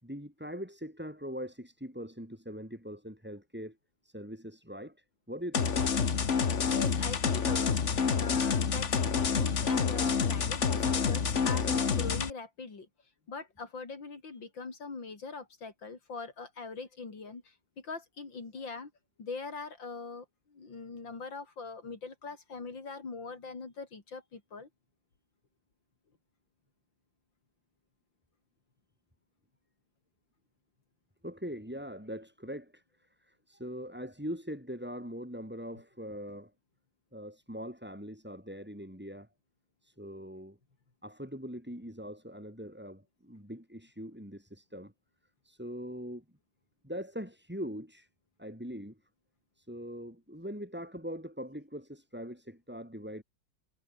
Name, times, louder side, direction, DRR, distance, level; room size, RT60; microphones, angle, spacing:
voice 1, 0.0-3.8 4.0-5.8 31.2-36.5 37.1-39.3 39.8-40.6 41.0-44.9 45.4-46.2 46.8-48.1 48.4-49.0 49.6-53.2, equal, 5° right, 7.0 m, -42 dB
sound 1, 5.5-12.3, left 6 dB, 40° left, 1.6 m, -28 dB
voice 2, 6.7-7.8 8.1-12.9 13.3-18.9 19.2-24.7, left 4 dB, 80° left, 4.5 m, -42 dB
omnidirectional pair, 2.0 m